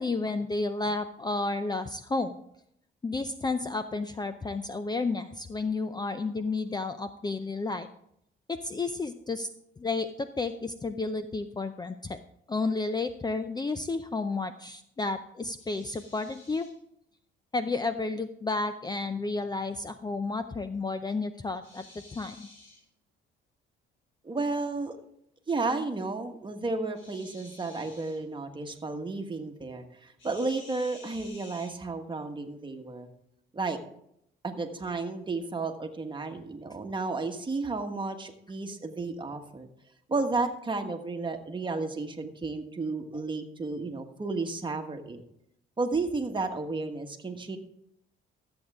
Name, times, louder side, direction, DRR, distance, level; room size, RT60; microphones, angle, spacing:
voice 1, 0.0-2.4 3.0-7.9 8.5-9.5 9.8-12.2 12.5-16.7 17.5-21.8 22.1-22.5, left 3 dB, 20° left, 10 dB, 0.5 m, -31 dB
sound 1, 15.6-16.7 21.6-22.8 27.0-28.2 30.2-31.7, left 2 dB, 80° left, 4.9 m, -52 dB
voice 2, 24.2-25.0 25.5-33.1 33.5-33.8 34.4-39.7 40.1-45.2 45.8-47.6, right 3 dB, 25° right, 4 dB, 1.5 m, -32 dB
13.5 x 8.0 x 3.6 m, 0.74 s
cardioid pair, 90°, 20 cm